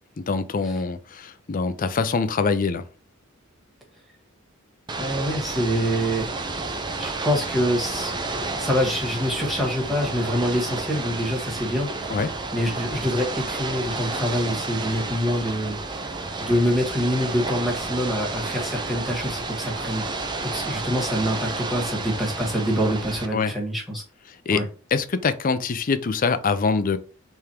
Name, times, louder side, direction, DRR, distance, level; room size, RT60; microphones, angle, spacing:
voice 1, 0.2-2.8 12.1-12.3 23.3-23.5 24.5-24.6 24.9-27.0, left 4 dB, 40° left, 0.5 m, -24 dB
Ocean / Boat Water vehicle, 4.9-23.3, right 3 dB, 20° right, 0.6 m, -31 dB
voice 2, 5.0-6.3 7.0-8.1 8.6-12.2 12.5-15.8 16.4-20.0 20.4-24.0 24.5-24.6, equal, ahead, 1.4 m, -25 dB
3.5 x 3.4 x 4.3 m
head